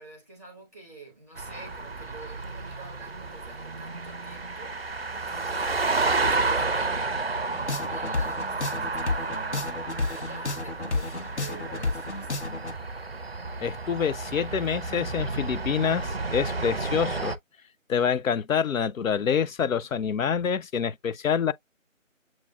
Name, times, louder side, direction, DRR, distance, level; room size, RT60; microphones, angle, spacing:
voice 1, 0.0-12.5, right 2 dB, 10° left, 1.1 m, -47 dB
sound 1, 1.4-17.4, right 3 dB, 50° right, 0.5 m, -31 dB
sound 2, 7.5-12.7, left 3 dB, 60° left, 0.9 m, -31 dB
voice 2, 13.6-17.3 17.9-21.5, left 7 dB, 85° left, 0.5 m, -26 dB
7.4 x 2.5 x 2.3 m
figure-of-eight pair, 170°, 40 cm